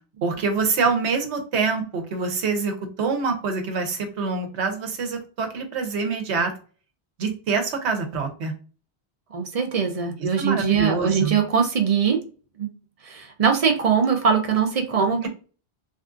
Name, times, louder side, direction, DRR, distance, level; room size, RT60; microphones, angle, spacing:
voice 1, 0.2-6.5 7.2-8.5 10.2-11.4, right 4 dB, 90° right, 4 dB, 1.1 m, -25 dB
voice 2, 9.3-12.2 12.6-12.7 13.0-15.3, right 6 dB, 50° right, 4 dB, 0.5 m, -22 dB
3.4 x 2.4 x 2.5 m, 0.38 s
omnidirectional pair, 1.1 m